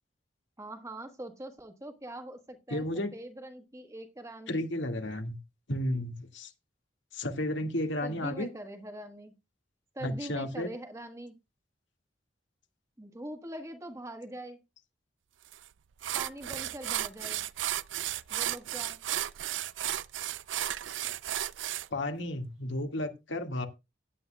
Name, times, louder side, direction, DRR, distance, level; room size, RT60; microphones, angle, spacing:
voice 1, 0.6-2.8 3.1-4.7 8.0-9.3 9.9-11.4 13.0-14.6 16.1-17.4 18.3-19.0, right 1 dB, 15° right, 1.4 m, -43 dB
voice 2, 2.7-3.1 4.5-5.4 5.7-6.5 7.1-8.5 10.0-10.7 21.9-23.7, left 1 dB, 80° left, 1.9 m, -32 dB
sound 1, 15.5-15.6 16.0-21.9, right 13 dB, 90° right, 0.5 m, -34 dB
16.5 x 9.9 x 2.2 m
head